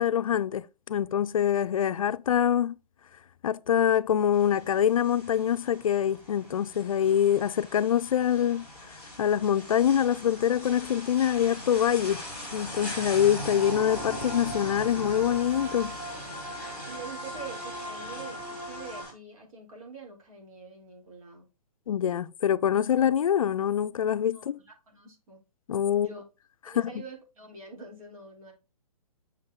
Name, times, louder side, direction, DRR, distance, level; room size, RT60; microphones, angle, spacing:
voice 1, 0.0-2.7 3.4-8.7 9.2-12.2 12.5-16.0 21.9-24.6 25.7-26.1 26.7-26.9, left 9 dB, 60° left, 0.4 m, -25 dB
sound 1, 4.3-19.1, equal, 10° right, 2.6 m, -41 dB
sound 2, 13.6-19.0, equal, 25° right, 2.2 m, -40 dB
voice 2, 16.9-21.5 24.3-25.4 25.9-26.2 26.7-28.5, right 4 dB, 60° right, 3.8 m, -45 dB
6.3 x 5.6 x 3.6 m
hypercardioid pair, 170°, 20 cm